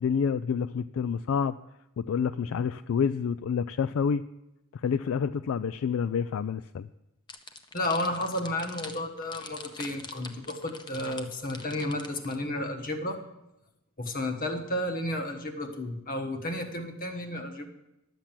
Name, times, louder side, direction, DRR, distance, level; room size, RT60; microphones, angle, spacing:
voice 1, 0.0-1.6 2.0-4.2 4.7-6.9, left 6 dB, 65° left, 14 dB, 0.3 m, -28 dB
sound 1, 7.3-12.4, left 3 dB, 20° left, 0.8 m, -43 dB
voice 2, 7.7-13.2 14.0-17.7, left 1 dB, 40° left, 6 dB, 1.3 m, -32 dB
11.5 x 7.3 x 7.5 m, 0.91 s
head